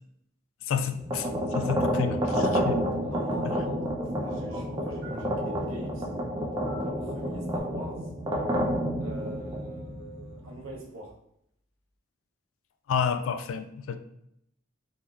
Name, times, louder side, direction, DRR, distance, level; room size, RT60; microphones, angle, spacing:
voice 1, 0.7-1.3 1.5-2.9 12.9-14.0, left 7 dB, 80° left, 0.3 m, -30 dB
sound 1, 0.9-10.7, equal, 20° right, 0.4 m, -29 dB
sound 2, 2.4-7.6, right 1 dB, 50° right, 0.9 m, -43 dB
voice 2, 3.0-6.1 6.8-8.1 9.0-11.2, right 1 dB, 85° right, 0.7 m, -42 dB
3.5 x 2.4 x 2.3 m
head